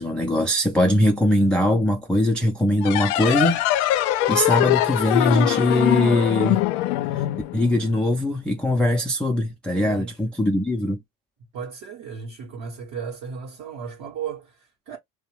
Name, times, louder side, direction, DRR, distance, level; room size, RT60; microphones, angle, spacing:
voice 1, 0.0-3.6 4.3-6.6 7.1-7.3 7.5-11.0, left 1 dB, 5° left, 0.4 m, -21 dB
sound 1, 2.8-8.1, left 15 dB, 70° left, 0.5 m, -22 dB
voice 2, 9.7-10.1 11.5-15.0, right 6 dB, 45° right, 0.8 m, -35 dB
2.6 x 2.0 x 3.0 m
hypercardioid pair, 85°, 44 cm